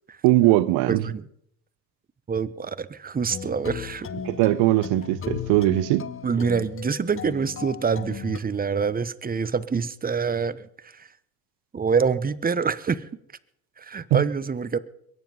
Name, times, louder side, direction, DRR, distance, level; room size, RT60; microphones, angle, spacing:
voice 1, 0.2-1.0 4.2-6.1 14.1-14.2, right 17 dB, 65° right, 0.8 m, -20 dB
voice 2, 0.9-1.2 2.3-4.1 6.2-11.1 11.7-13.0 13.8-14.8, right 5 dB, 20° right, 0.9 m, -26 dB
sound 1, 3.3-8.4, left 8 dB, 30° left, 0.9 m, -36 dB
22.0 x 9.8 x 5.4 m
hypercardioid pair, 75°, 44 cm